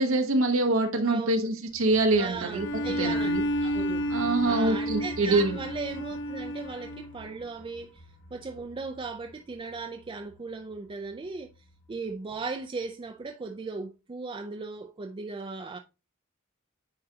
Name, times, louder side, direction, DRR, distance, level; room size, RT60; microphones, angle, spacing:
voice 1, 0.0-2.7 3.0-3.4 4.1-5.6, right 2 dB, 75° right, 0.9 m, -25 dB
voice 2, 1.0-1.5 2.2-3.3 3.6-4.0 4.4-8.0 8.3-11.5 11.9-15.8, right 4 dB, 25° right, 0.4 m, -37 dB
sound 1, 1.7-12.4 12.7-12.8 13.1-13.2, left 1 dB, 80° left, 1.9 m, -49 dB
Bowed string instrument, 2.5-7.2, equal, 60° left, 1.1 m, -31 dB
9.2 x 3.9 x 2.8 m
head